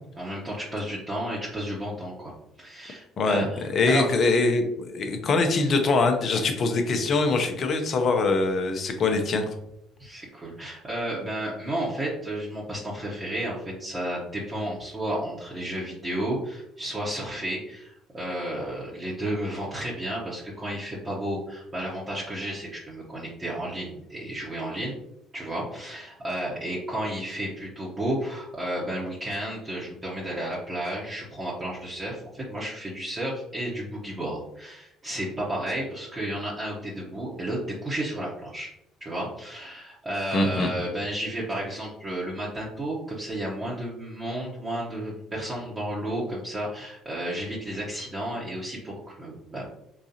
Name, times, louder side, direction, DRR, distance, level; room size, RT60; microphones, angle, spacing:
voice 1, 0.2-2.3 2.6-4.1 10.0-25.0 25.3-38.7 39.0-49.7, right 1 dB, 25° right, -6 dB, 1.0 m, -32 dB
voice 2, 3.2-9.4 40.3-40.7, left 3 dB, 50° left, 5 dB, 0.6 m, -23 dB
3.9 x 2.4 x 2.8 m, 0.82 s
hypercardioid pair, 65°, 0 cm